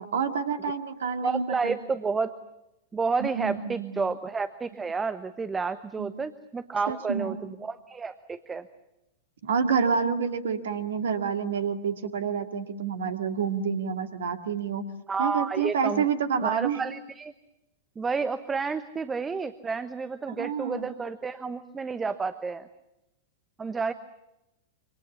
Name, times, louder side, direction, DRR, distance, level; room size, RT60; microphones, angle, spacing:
voice 1, 0.0-1.8 3.2-4.0 6.0-6.1 6.9-7.4 9.4-14.8 15.2-16.8 20.3-20.9, right 6 dB, 65° right, 8 dB, 2.1 m, -28 dB
voice 2, 1.2-2.3 2.9-8.7 15.1-16.0 16.4-17.3 18.0-22.7 23.6-23.9, right 4 dB, 15° right, 12 dB, 1.1 m, -30 dB
27.0 x 26.0 x 7.2 m, 0.91 s
figure-of-eight pair, 95°, 0 cm